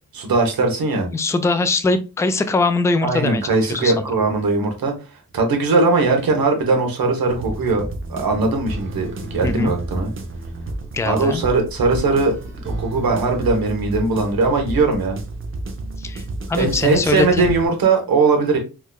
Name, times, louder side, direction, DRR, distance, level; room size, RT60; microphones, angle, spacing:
voice 1, 0.1-1.1 3.0-4.9 5.3-10.1 11.0-15.2 16.5-18.6, right 3 dB, 80° right, 3 dB, 1.1 m, -19 dB
voice 2, 1.0-3.9 9.4-9.7 10.9-11.4 16.0-17.6, left 3 dB, 10° left, 10 dB, 0.3 m, -22 dB
sound 1, 7.3-17.7, right 2 dB, 35° right, 0.6 m, -31 dB
4.6 x 2.3 x 2.3 m, 0.31 s
cardioid pair, 90°, 35 cm